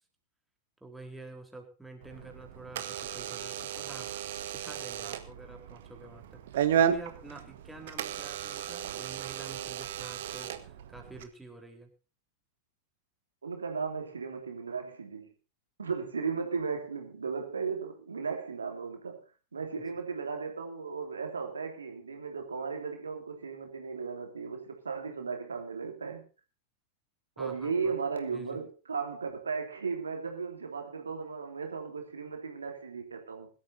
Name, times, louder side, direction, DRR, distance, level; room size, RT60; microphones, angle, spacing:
voice 1, 0.8-4.1 4.5-11.9 27.4-27.9 28.3-28.6, right 2 dB, 5° right, 4.0 m, -48 dB
Door / Alarm, 2.0-11.2, right 9 dB, 55° right, 1.5 m, -34 dB
voice 2, 13.4-15.3 15.8-19.2 19.5-26.2 27.4-33.5, right 5 dB, 75° right, 3.1 m, -36 dB
22.0 x 13.0 x 2.7 m
figure-of-eight pair, 90°, 0 cm